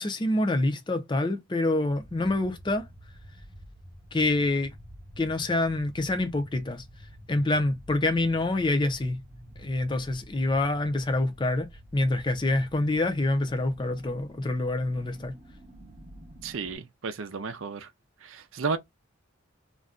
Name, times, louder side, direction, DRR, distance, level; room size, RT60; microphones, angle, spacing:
voice 1, 0.0-2.9 4.1-4.7 5.2-6.8 7.3-9.2 9.6-11.7 11.9-15.3, left 2 dB, 25° left, 0.5 m, -26 dB
sound 1, 1.8-16.8, equal, 30° right, 0.8 m, -49 dB
voice 2, 16.4-17.9 18.2-18.8, right 4 dB, 75° right, 0.5 m, -33 dB
2.5 x 2.2 x 3.7 m
head